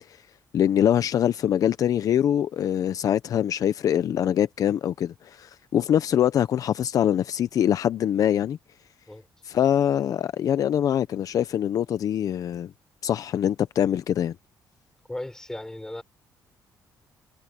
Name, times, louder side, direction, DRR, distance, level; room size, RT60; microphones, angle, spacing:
voice 1, 0.5-8.6 9.4-12.7 13.0-14.3, left 10 dB, 55° left, 0.7 m, -23 dB
voice 2, 15.1-16.0, left 1 dB, 10° left, 4.2 m, -36 dB
cardioid pair, 125°, 7 cm